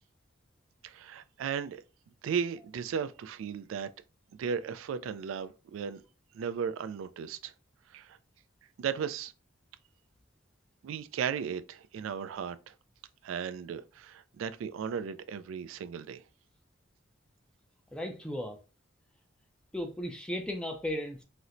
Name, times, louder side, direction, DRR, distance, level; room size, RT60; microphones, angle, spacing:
voice 1, 0.8-1.8 2.2-3.9 4.4-6.0 6.3-7.5 7.9-8.2 8.8-9.3 10.8-12.7 13.2-16.2, right 7 dB, 85° right, 0.3 m, -35 dB
voice 2, 17.9-18.6 19.7-21.2, left 1 dB, 5° left, 0.4 m, -35 dB
4.1 x 2.1 x 2.5 m
head